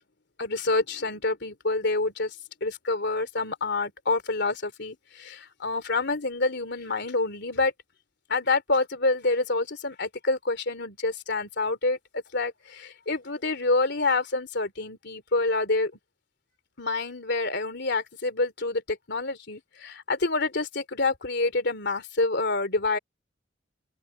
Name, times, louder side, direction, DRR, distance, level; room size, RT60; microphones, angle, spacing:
voice 1, 0.4-2.4 2.6-7.7 8.3-15.9 16.8-23.0, left 3 dB, 65° left, 3.1 m, -27 dB
head